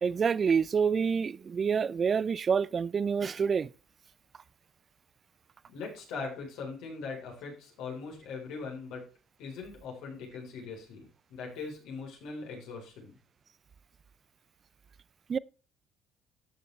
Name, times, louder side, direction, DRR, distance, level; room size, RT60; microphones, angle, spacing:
voice 1, 0.0-3.7 15.3-15.4, right 6 dB, 40° right, 0.4 m, -27 dB
voice 2, 5.7-9.0 9.4-13.1, left 4 dB, 80° left, 4.0 m, -41 dB
13.0 x 7.0 x 3.3 m
supercardioid pair, 85°, 0 cm